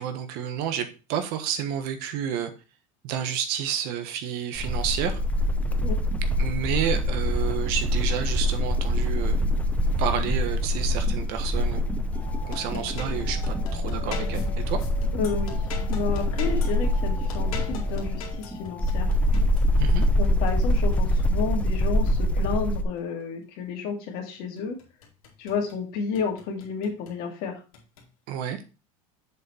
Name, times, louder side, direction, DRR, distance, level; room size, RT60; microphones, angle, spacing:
voice 1, 0.0-2.5 3.0-5.2 6.4-9.4 10.0-11.8 12.4-14.8 19.8-20.1 28.3-28.6, right 9 dB, 60° right, 9 dB, 1.3 m, -30 dB
sound 1, 4.6-22.8, left 1 dB, 10° left, 0.7 m, -25 dB
sound 2, 5.6-20.2, right 1 dB, 10° right, 2.2 m, -44 dB
sound 3, 12.1-22.8 24.6-25.8 26.1-27.2 27.7-28.1, left 6 dB, 85° left, 2.2 m, -41 dB
voice 2, 15.2-15.6 15.9-19.1 20.2-24.8 25.4-27.6, left 5 dB, 60° left, 2 dB, 2.2 m, -31 dB
7.4 x 4.2 x 4.3 m, 0.33 s
supercardioid pair, 110°, 18 cm